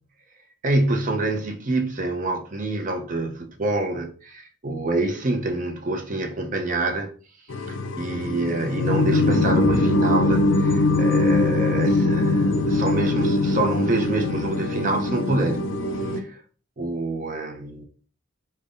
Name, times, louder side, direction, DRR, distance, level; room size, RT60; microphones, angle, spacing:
voice 1, 0.6-7.1 7.7-15.7 16.1-16.4 16.8-17.8, right 2 dB, 40° right, 0.6 m, -26 dB
sound 1, 7.5-16.2, left 2 dB, 65° left, 0.4 m, -22 dB
5.2 x 2.2 x 2.5 m
head